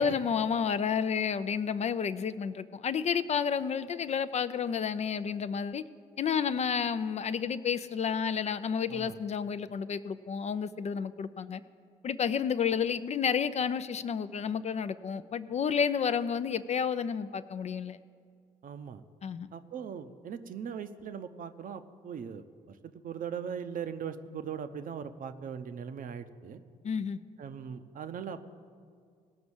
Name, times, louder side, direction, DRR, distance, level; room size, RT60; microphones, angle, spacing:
voice 1, 0.0-5.8 6.2-11.6 12.0-18.0 19.2-19.5 26.8-27.2, left 7 dB, 35° left, 13 dB, 0.5 m, -30 dB
voice 2, 18.6-19.0 19.5-26.6 27.4-28.5, right 7 dB, 45° right, 10 dB, 0.7 m, -40 dB
18.0 x 6.0 x 7.2 m, 2.1 s
figure-of-eight pair, 45°, 20 cm